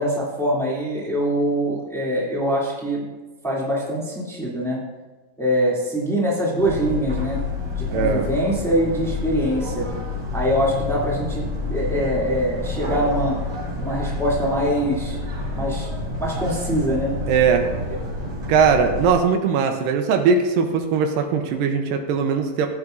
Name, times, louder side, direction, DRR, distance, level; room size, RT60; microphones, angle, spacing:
voice 1, 0.0-3.0 3.4-4.8 5.4-7.4 7.7-9.9 10.3-13.4 13.8-15.2 15.5-15.9 16.2-17.1, equal, ahead, -7 dB, 2.2 m, -23 dB
sound 1, 6.6-19.1, left 3 dB, 25° right, 2.1 m, -29 dB
voice 2, 7.9-8.3 17.3-17.7 18.5-22.7, right 6 dB, 85° right, 5 dB, 2.5 m, -20 dB
17.0 x 8.2 x 2.6 m, 1.2 s
omnidirectional pair, 4.0 m